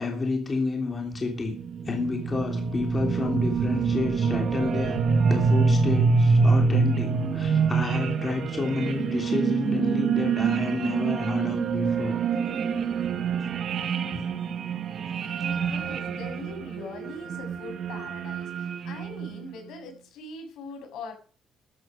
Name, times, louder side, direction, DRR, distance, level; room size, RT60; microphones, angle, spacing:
voice 1, 0.0-1.5 1.8-5.0 5.3-12.2 13.4-13.5 14.1-14.3, left 3 dB, 25° left, 3.2 m, -30 dB
sound 1, 1.1-19.5, right 5 dB, 50° right, 1.8 m, -26 dB
voice 2, 15.2-21.1, left 3 dB, 80° left, 7.1 m, -41 dB
13.5 x 12.5 x 5.2 m
cardioid pair, 150°, 0 cm